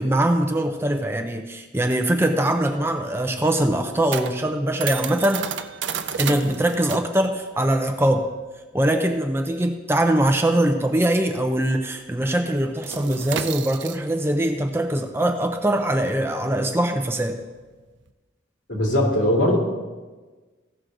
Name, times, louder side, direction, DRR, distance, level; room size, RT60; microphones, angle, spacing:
voice 1, 0.0-5.5 6.2-8.2 8.7-17.4, right 1 dB, 10° right, 5 dB, 0.5 m, -22 dB
sound 1, 2.6-11.6 11.8-12.1 12.4-18.1, right 7 dB, 75° right, 0.6 m, -34 dB
voice 2, 18.7-19.6, left 1 dB, 75° left, -3 dB, 2.8 m, -20 dB
15.5 x 6.3 x 3.8 m, 1.3 s
head